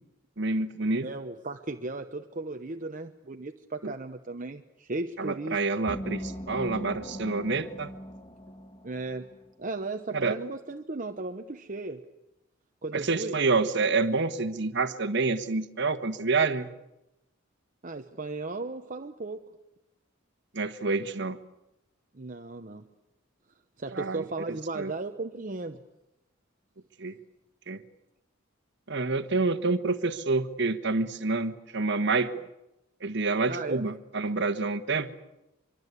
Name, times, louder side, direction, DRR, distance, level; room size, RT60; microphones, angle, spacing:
voice 1, 0.4-1.1 3.8-3.9 5.2-7.9 10.1-10.3 12.9-16.7 20.5-21.4 23.9-24.2 24.7-24.9 27.0-27.1 27.7-27.8 28.9-32.5 33.0-35.1, right 3 dB, 60° right, 10 dB, 1.4 m, -28 dB
voice 2, 1.0-5.6 8.8-9.3 9.6-12.1 12.8-13.4 17.8-19.4 22.1-22.8 23.8-25.8 33.5-33.9, right 3 dB, 40° right, 6 dB, 0.9 m, -36 dB
sound 1, 5.9-9.4, equal, 25° left, 1.9 m, -40 dB
25.0 x 23.5 x 8.3 m, 0.91 s
head